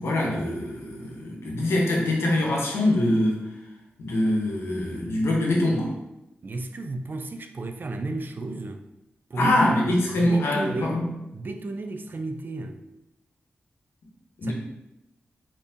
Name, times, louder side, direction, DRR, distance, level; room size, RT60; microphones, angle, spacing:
voice 1, 0.0-3.5 4.0-5.9 9.4-11.1 14.4-14.5, left 1 dB, 85° left, 0.7 m, -24 dB
voice 2, 6.4-8.8 9.3-9.8 10.1-11.0 11.3-12.8 14.4-14.5, right 2 dB, 50° right, 0.3 m, -33 dB
3.4 x 2.7 x 2.7 m
cardioid pair, 45°, 4 cm